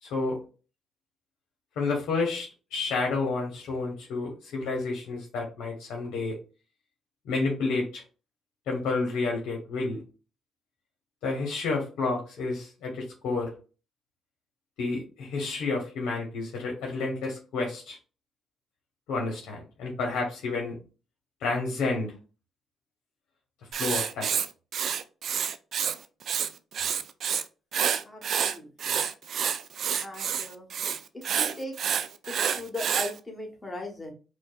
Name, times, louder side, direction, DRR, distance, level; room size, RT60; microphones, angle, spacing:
voice 1, 0.0-0.4 1.8-6.4 7.2-8.0 8.7-10.0 11.2-13.5 14.8-18.0 19.1-20.8 21.4-22.1 23.7-24.3, left 3 dB, 85° left, 0 dB, 1.0 m, -30 dB
Writing, 23.7-26.0 26.2-27.4 27.7-33.1, right 8 dB, 60° right, 0.4 m, -28 dB
voice 2, 28.1-28.7 30.0-30.6 31.3-31.7 32.6-34.1, left 1 dB, 15° left, 1 dB, 1.4 m, -37 dB
4.9 x 2.3 x 2.4 m, 0.34 s
cardioid pair, 90°, 0 cm